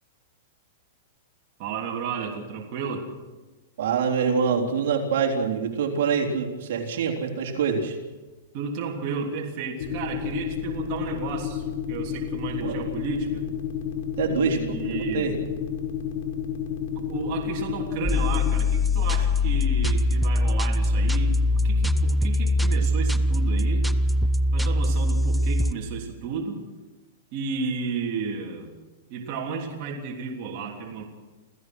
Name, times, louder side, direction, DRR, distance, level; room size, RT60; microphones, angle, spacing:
voice 1, 1.6-3.1 8.5-13.4 14.3-15.3 16.9-23.9 24.5-26.6 27.3-28.7 29.1-31.0, right 5 dB, 40° right, -1 dB, 3.4 m, -33 dB
voice 2, 3.8-8.0 12.6-12.8 14.2-15.3, right 6 dB, 65° right, 0 dB, 3.7 m, -25 dB
sound 1, 9.8-18.5, left 9 dB, 55° left, 5.2 m, -30 dB
sound 2, 18.0-25.7, left 1 dB, ahead, 0.6 m, -22 dB
28.5 x 16.0 x 6.3 m, 1.2 s
supercardioid pair, 155°, 0 cm